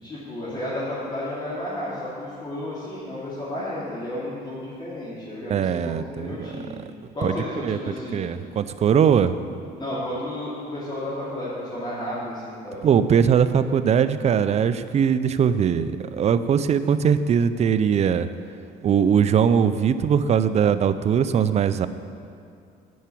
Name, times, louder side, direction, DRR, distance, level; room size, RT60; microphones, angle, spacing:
voice 1, 0.0-6.8 7.1-8.2 9.8-12.8, left 1 dB, 25° left, -11 dB, 2.7 m, -32 dB
voice 2, 5.5-6.5 7.2-7.4 7.6-7.8 8.1-9.3 12.8-18.3 18.8-21.9, right 7 dB, 40° right, 12 dB, 0.5 m, -20 dB
9.3 x 5.8 x 8.4 m, 2.4 s
cardioid pair, 110°, 17 cm